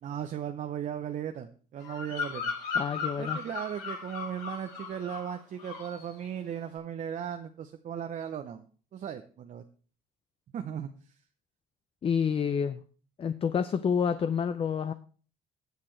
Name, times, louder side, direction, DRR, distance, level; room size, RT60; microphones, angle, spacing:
voice 1, 0.0-2.5 3.2-8.7 8.9-9.6 10.5-10.9, right 9 dB, 50° right, 7 dB, 0.8 m, -37 dB
Bird vocalization bird call bird song, 1.8-5.3 5.6-6.0, left 5 dB, 85° left, 6.0 m, -36 dB
voice 2, 2.8-3.4 12.0-12.8 13.2-14.9, left 7 dB, 35° left, 12 dB, 0.5 m, -28 dB
19.0 x 6.7 x 3.2 m, 0.41 s
cardioid pair, 110°, 17 cm